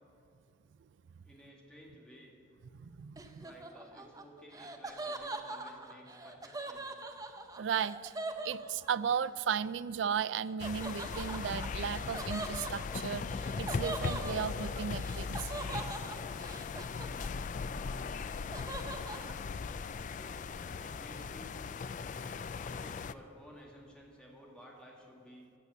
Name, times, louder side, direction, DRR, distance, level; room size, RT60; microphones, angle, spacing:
voice 1, 1.2-2.3 3.4-7.0 8.4-8.5 20.1-20.5 20.8-21.7 22.6-25.5, equal, 5° left, -2 dB, 2.0 m, -55 dB
voice 2, 2.8-3.5 7.6-8.1 8.4-15.5, right 7 dB, 70° right, 17 dB, 0.3 m, -35 dB
Laughter, 3.2-9.2 10.6-17.6 17.9-19.3, right 2 dB, 20° right, 0.7 m, -43 dB
sound 1, 10.6-23.1, left 5 dB, 40° left, 0.3 m, -38 dB
15.0 x 6.8 x 8.2 m, 2.7 s
head